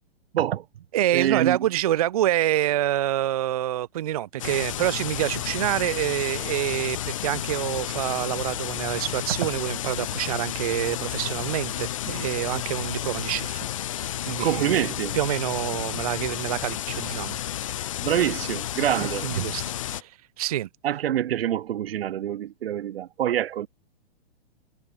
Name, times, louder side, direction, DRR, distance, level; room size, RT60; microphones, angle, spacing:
voice 1, 0.3-0.6 1.1-1.6 13.9-14.1 14.4-15.2 18.0-19.4 20.8-23.7, right 11 dB, 65° right, 1.1 m, -26 dB
voice 2, 0.9-13.6 14.2-14.8 15.1-17.9 19.0-20.7, right 13 dB, 35° right, 0.5 m, -27 dB
sound 1, 4.4-20.0, left 12 dB, 30° left, 0.4 m, -31 dB
hypercardioid pair, 170°, 32 cm